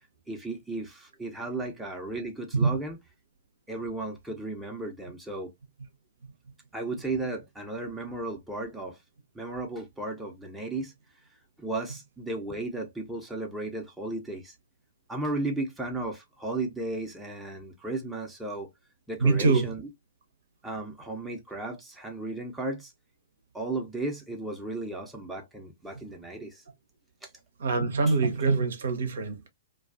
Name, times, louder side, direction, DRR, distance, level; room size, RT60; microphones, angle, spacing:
voice 1, 0.3-3.0 3.7-5.5 6.7-9.0 9.3-10.9 11.6-14.5 15.1-18.7 19.1-19.9 20.6-22.9 23.5-26.6 27.2-27.3, right 2 dB, 5° right, 0.6 m, -35 dB
voice 2, 19.2-19.7 27.6-29.5, right 4 dB, 65° right, 0.6 m, -24 dB
2.3 x 2.3 x 2.4 m
figure-of-eight pair, 110°, 0 cm